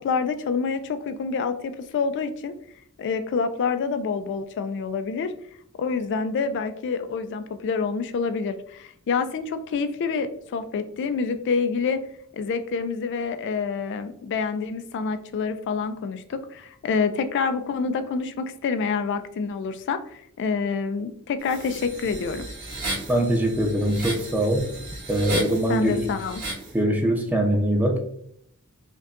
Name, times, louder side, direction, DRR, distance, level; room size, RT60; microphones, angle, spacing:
voice 1, 0.0-2.5 3.0-5.3 5.8-12.0 12.3-22.4 25.7-26.4, left 5 dB, 55° left, 9 dB, 0.3 m, -27 dB
sound 1, 21.4-26.7, right 2 dB, 85° right, 1.3 m, -35 dB
voice 2, 23.1-24.7 25.1-26.1 26.7-28.0, right 1 dB, 10° right, 2 dB, 0.6 m, -22 dB
5.2 x 2.2 x 2.5 m, 0.68 s
head